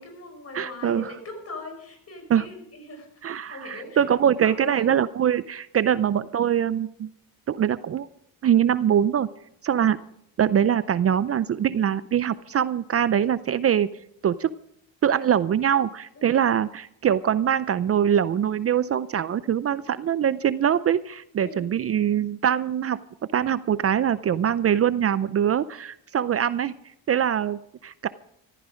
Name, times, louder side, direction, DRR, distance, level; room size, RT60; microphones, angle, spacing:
voice 1, 0.0-3.2 3.5-4.0 4.4-4.8 16.2-16.4 21.4-21.7, left 2 dB, 45° left, 5 dB, 5.8 m, -40 dB
voice 2, 0.5-1.1 2.3-2.5 3.2-7.1 7.5-8.1 8.4-9.3 9.6-10.0 10.4-13.9 14.2-14.5 15.0-23.0 23.3-26.7 27.1-28.1, right 9 dB, 40° right, 16 dB, 0.6 m, -23 dB
14.5 x 14.5 x 5.1 m, 0.74 s
cardioid pair, 90°, 35 cm